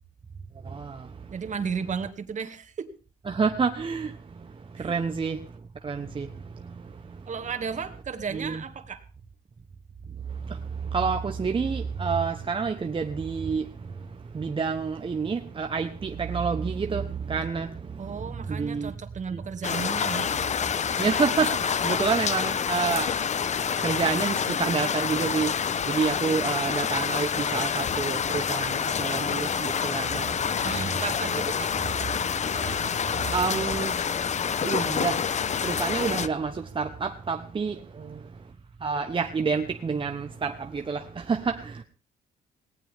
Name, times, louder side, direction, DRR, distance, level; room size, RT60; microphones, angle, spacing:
voice 1, 0.6-1.1 3.3-5.5 5.8-7.2 8.3-8.6 10.4-19.0 19.3-19.4 21.0-23.2 23.8-31.0 33.0-35.3 35.6-37.8 38.8-41.8, right 5 dB, 35° right, 1.2 m, -29 dB
voice 2, 1.3-2.9 4.8-5.0 7.3-9.0 18.0-20.3 30.6-31.7 37.8-38.3, right 6 dB, 50° right, 2.3 m, -34 dB
sound 1, 19.6-36.3, left 7 dB, 50° left, 0.9 m, -27 dB
18.5 x 18.5 x 3.7 m
cardioid pair, 95°, 16 cm